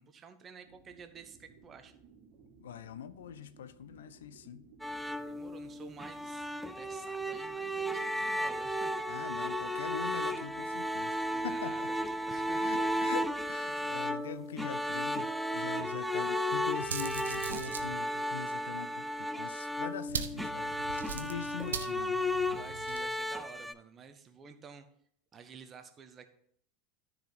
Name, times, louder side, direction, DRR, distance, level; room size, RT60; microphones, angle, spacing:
voice 1, 0.0-2.0 5.2-9.2 11.3-13.1 22.5-24.8 25.3-26.3, right 6 dB, 30° right, 1.2 m, -51 dB
sound 1, 0.6-13.5, right 4 dB, 55° right, 2.0 m, -60 dB
voice 2, 2.6-4.7 9.1-11.9 12.5-20.8 21.1-22.2, left 9 dB, 70° left, 0.5 m, -43 dB
sound 2, 4.8-23.7, equal, ahead, 0.5 m, -34 dB
sound 3, 16.8-17.9 20.1-23.1, right 7 dB, 75° right, 0.7 m, -40 dB
13.0 x 5.0 x 4.0 m
figure-of-eight pair, 80°, 0 cm